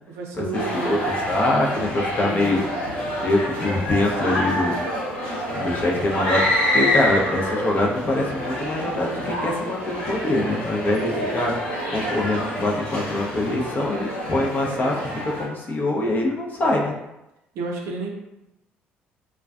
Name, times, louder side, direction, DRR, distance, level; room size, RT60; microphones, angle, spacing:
voice 1, 0.1-1.1 1.7-2.7 17.5-18.1, right 4 dB, 65° right, 0 dB, 0.5 m, -32 dB
sound 1, 0.5-15.5, left 1 dB, 85° left, 0.8 m, -27 dB
voice 2, 1.3-2.6 3.2-4.8 5.6-11.5 11.9-17.0, left 1 dB, 35° left, -1 dB, 0.6 m, -24 dB
2.3 x 2.2 x 2.4 m, 0.91 s
hypercardioid pair, 55°, 5 cm